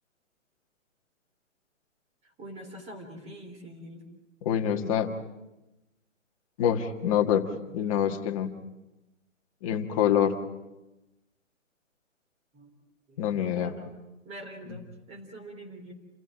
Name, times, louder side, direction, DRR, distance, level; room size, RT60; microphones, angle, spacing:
voice 1, 2.2-4.1 12.5-12.8 13.1-13.9 14.2-15.9, right 1 dB, 15° right, 3 dB, 3.6 m, -45 dB
voice 2, 4.4-5.1 6.6-7.5 7.7-8.5 9.6-10.4 13.2-13.7, left 9 dB, 25° left, 4 dB, 1.7 m, -25 dB
28.5 x 15.5 x 8.8 m, 1.0 s
hypercardioid pair, 150°, 39 cm